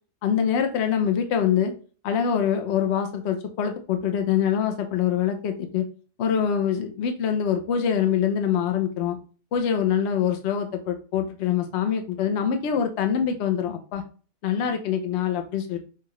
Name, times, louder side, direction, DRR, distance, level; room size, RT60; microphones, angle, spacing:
voice 1, 0.2-1.7 2.0-5.9 6.2-9.2 9.5-14.0 14.4-15.8, left 8 dB, 55° left, 6 dB, 0.9 m, -24 dB
5.6 x 2.4 x 3.1 m, 0.37 s
omnidirectional pair, 1.6 m